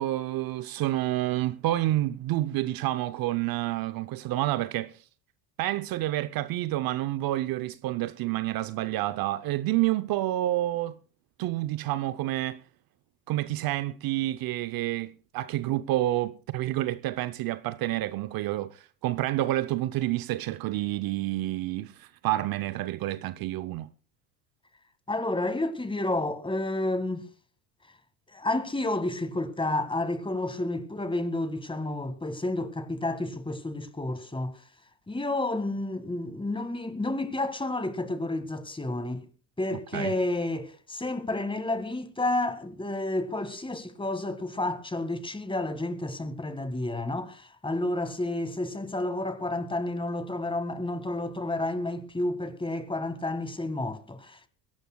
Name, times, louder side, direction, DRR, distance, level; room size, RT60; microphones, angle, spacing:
voice 1, 0.0-5.0 5.6-11.0 11.4-12.6 13.3-23.9 39.9-40.1, right 15 dB, 50° right, 0.7 m, -29 dB
voice 2, 25.1-27.2 28.3-34.6 35.1-39.3 39.6-54.5, left 2 dB, 10° left, 1.9 m, -30 dB
22.0 x 17.5 x 2.3 m
hypercardioid pair, 85°, 47 cm